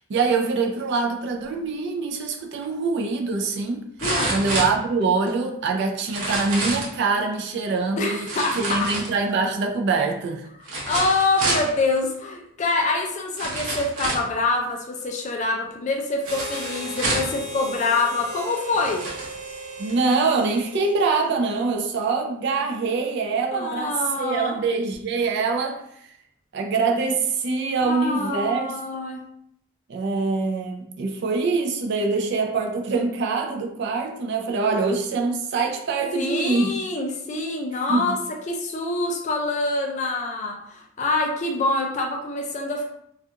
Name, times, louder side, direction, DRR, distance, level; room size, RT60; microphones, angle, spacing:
voice 1, 0.0-3.9 4.3-8.3 8.6-10.5 19.8-26.1 26.5-28.7 29.9-36.7 37.9-38.2, right 4 dB, 50° right, 3 dB, 0.3 m, -24 dB
sound 1, 2.6-2.7 4.0-5.3 6.0-7.0 8.2-9.4 10.6-11.7 12.7-12.8 13.4-14.3 16.3-17.4 18.2-18.3 18.7-19.3 19.9-20.0, right 2 dB, 75° right, 0.8 m, -28 dB
voice 2, 4.0-4.4 8.0-8.9 10.9-19.0 23.5-24.6 27.8-29.2 36.1-38.2 38.5-42.9, left 2 dB, 35° left, 3 dB, 0.3 m, -25 dB
Harmonica, 16.2-21.7, equal, 35° right, 0.7 m, -37 dB
2.4 x 2.3 x 2.7 m, 0.72 s
head